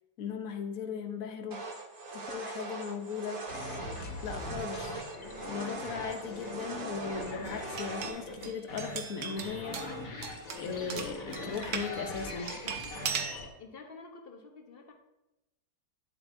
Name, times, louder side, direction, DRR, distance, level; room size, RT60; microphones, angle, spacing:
voice 1, 0.2-1.6 2.1-3.5 4.2-4.9 5.5-10.1 10.6-12.5, left 6 dB, 65° left, 6 dB, 1.2 m, -38 dB
sound 1, 1.5-8.1, right 3 dB, 40° right, 1.0 m, -41 dB
sound 2, 3.5-13.5, left 2 dB, 80° left, 2.1 m, -41 dB
sound 3, 7.4-11.9 12.5-13.4, right 7 dB, 75° right, 1.3 m, -39 dB
voice 2, 13.6-14.9, left 4 dB, 40° left, 3 dB, 1.0 m, -49 dB
10.5 x 7.7 x 2.7 m, 0.97 s
omnidirectional pair, 1.6 m